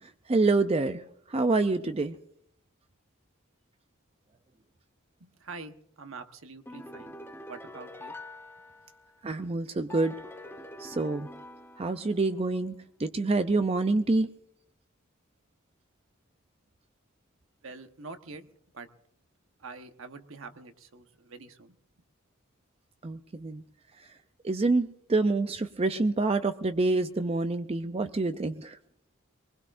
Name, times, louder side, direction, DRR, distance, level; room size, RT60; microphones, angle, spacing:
voice 1, 0.0-1.0 1.3-2.2 9.2-10.2 10.8-11.3 11.8-12.7 13.0-14.3 23.0-23.6 24.4-28.8, right 3 dB, 30° right, 9 dB, 0.5 m, -27 dB
voice 2, 5.2-7.2 7.5-8.1 17.6-18.9 19.6-21.8, right 4 dB, 75° right, 8 dB, 1.2 m, -45 dB
sound 1, 6.7-9.3 9.9-12.4, left 1 dB, 10° left, 1.1 m, -45 dB
23.0 x 20.0 x 2.6 m, 0.73 s
head